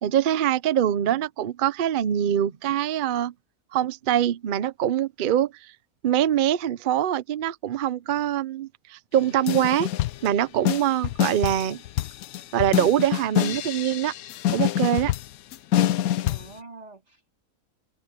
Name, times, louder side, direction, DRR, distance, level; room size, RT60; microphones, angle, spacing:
voice 1, 0.0-3.3 3.7-5.7 6.0-9.9 10.2-11.8 12.5-14.1 14.5-15.1, right 11 dB, 55° right, 0.5 m, -24 dB
sound 1, 9.5-10.3 10.7-16.5, left 12 dB, 75° left, 1.1 m, -25 dB
voice 2, 16.3-17.3, right 3 dB, 25° right, 4.1 m, -46 dB
omnidirectional pair, 1.6 m